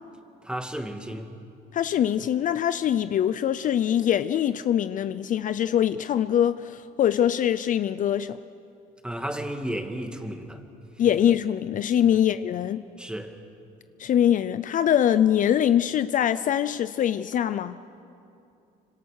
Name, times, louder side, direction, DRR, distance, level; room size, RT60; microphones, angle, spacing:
voice 1, 0.4-1.3 9.0-10.6 12.0-12.2 13.0-13.4, right 1 dB, 5° right, 2.1 m, -33 dB
voice 2, 1.7-8.4 11.0-12.8 14.0-17.8, left 10 dB, 50° left, 0.6 m, -23 dB
26.0 x 25.0 x 6.5 m
cardioid pair, 110°, 17 cm